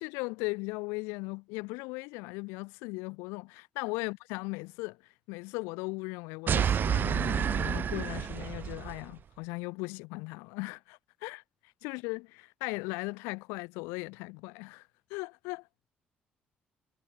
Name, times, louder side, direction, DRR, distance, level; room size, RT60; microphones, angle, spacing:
voice 1, 0.0-5.0 5.3-11.4 11.8-15.7, left 28 dB, 70° left, 2.6 m, -38 dB
sound 1, 6.5-9.0, right 8 dB, 45° right, 0.7 m, -29 dB
figure-of-eight pair, 45°, 5 cm